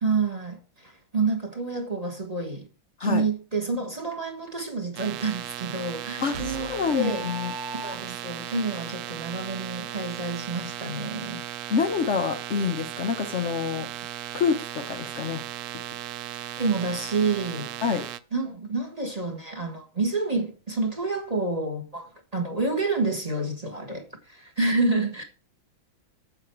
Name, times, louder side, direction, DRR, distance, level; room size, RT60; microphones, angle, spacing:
voice 1, 0.0-2.7 3.0-7.3 7.8-11.4 16.6-17.7 18.3-25.2, right 3 dB, 20° right, 1.3 m, -28 dB
sound 1, 5.0-18.2, right 13 dB, 80° right, 0.8 m, -37 dB
voice 2, 6.2-7.5 11.7-13.9 14.3-15.4 17.8-18.1, left 6 dB, 55° left, 0.8 m, -27 dB
sound 2, 6.3-8.4, right 1 dB, 55° right, 1.5 m, -38 dB
7.9 x 7.8 x 4.6 m
omnidirectional pair, 2.2 m